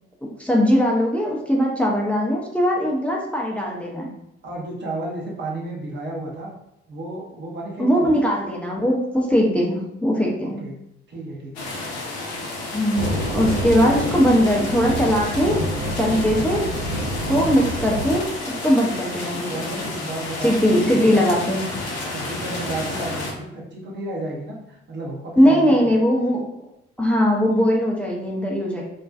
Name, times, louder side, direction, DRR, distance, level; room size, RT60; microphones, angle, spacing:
voice 1, 0.4-4.1 7.8-10.6 12.7-13.1 13.3-15.6 16.0-16.7 17.3-18.3 18.6-19.8 20.4-21.6 25.4-26.4 27.0-28.8, equal, 5° left, -3 dB, 0.5 m, -20 dB
voice 2, 4.4-6.5 6.9-8.1 10.4-10.8 11.1-11.7 17.2-17.6 19.5-20.6 20.9-21.2 22.1-25.9, right 2 dB, 35° right, -2 dB, 0.8 m, -33 dB
sound 1, 11.6-23.3, left 2 dB, 80° left, 0.5 m, -31 dB
sound 2, 12.9-18.2, equal, 70° right, 0.8 m, -27 dB
2.5 x 2.2 x 2.3 m, 0.80 s
figure-of-eight pair, 40°, 32 cm